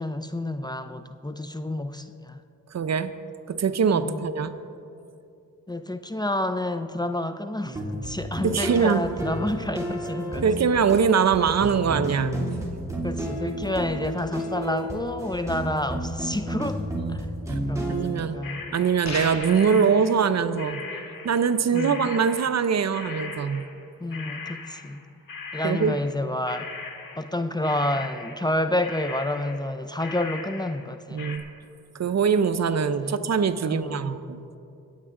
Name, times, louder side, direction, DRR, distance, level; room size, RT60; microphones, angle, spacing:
voice 1, 0.0-2.4 3.9-4.2 5.7-10.4 13.0-16.8 17.1-17.3 17.7-18.6 21.7-22.1 24.0-25.0 25.5-26.7 27.2-31.3 33.0-33.3 33.6-34.1, left 1 dB, 10° left, 10 dB, 0.5 m, -29 dB
voice 2, 2.7-3.1 3.5-4.5 8.4-9.1 10.4-12.4 16.9-17.2 17.9-18.4 18.7-20.8 21.2-23.7 25.6-26.0 31.1-31.4 31.9-34.4, right 6 dB, 50° right, 11 dB, 0.7 m, -23 dB
sound 1, 7.6-18.2, right 1 dB, 10° right, 2.8 m, -32 dB
sound 2, 18.4-19.1 19.4-21.5 21.7-30.9 31.2-31.4, left 4 dB, 75° left, 1.6 m, -39 dB
sound 3, 19.0-19.8, left 2 dB, 50° left, 2.2 m, -33 dB
23.5 x 8.8 x 3.7 m, 2.7 s
cardioid pair, 60°, 34 cm